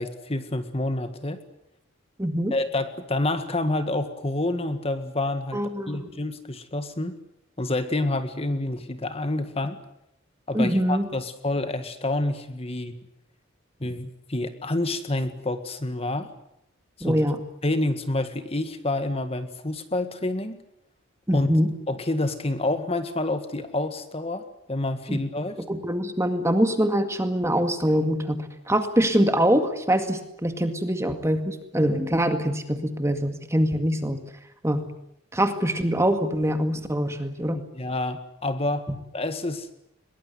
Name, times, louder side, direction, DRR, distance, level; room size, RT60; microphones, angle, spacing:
voice 1, 0.0-1.4 2.5-5.6 5.9-7.1 7.6-9.8 10.5-12.9 13.8-16.3 17.0-17.2 17.6-20.6 21.3-21.5 21.9-25.6 37.5-38.9 39.1-39.7, left 2 dB, 30° left, 9 dB, 1.8 m, -28 dB
voice 2, 2.2-2.5 5.5-6.1 10.5-11.1 17.0-17.4 21.3-21.7 25.1-25.2 25.7-34.2 34.6-34.9 35.3-37.6, equal, 15° right, 8 dB, 2.0 m, -24 dB
22.0 x 22.0 x 9.7 m, 0.80 s
head